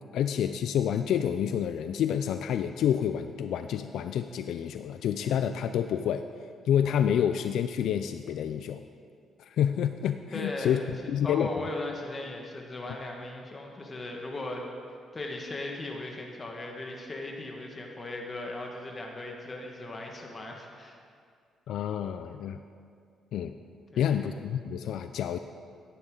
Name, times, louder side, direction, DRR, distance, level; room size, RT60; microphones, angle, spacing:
voice 1, 0.1-6.2 6.7-8.8 9.5-10.8 11.1-11.5 21.7-22.6 23.3-23.5 24.0-25.4, left 9 dB, 75° left, 9 dB, 0.4 m, -28 dB
voice 2, 10.3-10.9 11.2-14.7 15.1-21.0 23.9-24.1, left 2 dB, 30° left, 1 dB, 1.6 m, -37 dB
14.5 x 11.0 x 3.9 m, 2.2 s
cardioid pair, 90°, 0 cm